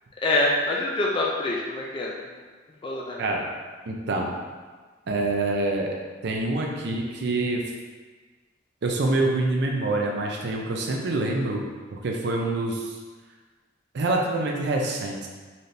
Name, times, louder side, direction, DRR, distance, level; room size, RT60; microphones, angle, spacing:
voice 1, 0.2-2.1 2.8-3.2, left 2 dB, 25° left, -3 dB, 0.4 m, -25 dB
voice 2, 3.9-4.3 5.1-5.9 6.2-7.6 8.8-11.6 11.9-13.0 13.9-15.3, right 2 dB, 60° right, 0 dB, 0.5 m, -26 dB
4.1 x 3.2 x 2.6 m, 1.4 s
head